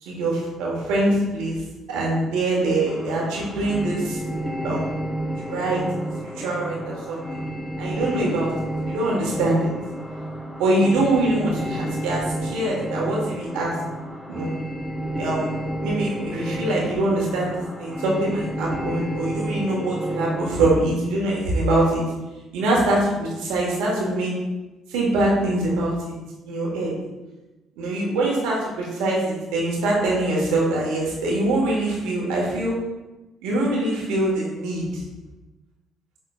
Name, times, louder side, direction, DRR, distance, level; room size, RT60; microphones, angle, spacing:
voice 1, 0.0-1.6 1.9-4.2 4.6-4.9 5.4-5.8 6.4-7.4 7.8-8.5 8.8-9.7 10.6-13.7 14.3-14.6 15.2-22.1 22.5-24.3 24.9-25.9 26.4-26.9 27.8-32.8 33.4-34.9, right 2 dB, 80° right, -3 dB, 1.2 m, -23 dB
sound 1, 2.9-20.8, equal, 10° left, 0.8 m, -31 dB
5.6 x 3.7 x 2.3 m, 1.1 s
hypercardioid pair, 55°, 0 cm